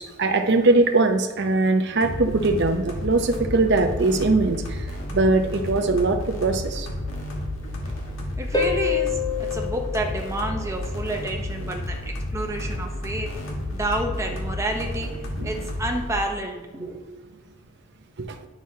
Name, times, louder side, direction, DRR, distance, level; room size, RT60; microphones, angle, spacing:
voice 1, 0.2-4.9 5.1-6.9 15.3-15.5 16.8-16.9 18.2-18.4, right 2 dB, 55° right, 5 dB, 0.7 m, -21 dB
sound 1, 2.0-16.1, left 1 dB, 70° left, 1.4 m, -31 dB
voice 2, 8.4-12.0 12.3-13.3 13.7-15.1 15.4-17.0, right 1 dB, 15° right, 2 dB, 0.8 m, -29 dB
Harp, 8.5-11.0 14.5-14.6, left 6 dB, 20° left, 0.8 m, -27 dB
9.4 x 6.1 x 2.8 m, 1.3 s
head